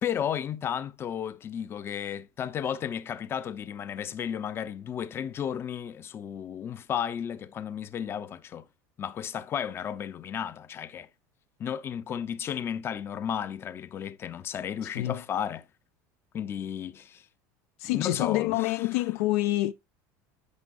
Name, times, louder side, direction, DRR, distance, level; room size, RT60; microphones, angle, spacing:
voice 1, 0.0-8.7 9.0-11.1 11.6-15.7 16.3-17.2 17.8-19.0, left 9 dB, 30° left, 0.5 m, -33 dB
voice 2, 17.8-19.7, left 17 dB, 80° left, 0.5 m, -27 dB
9.5 x 5.3 x 2.5 m
supercardioid pair, 130°, 8 cm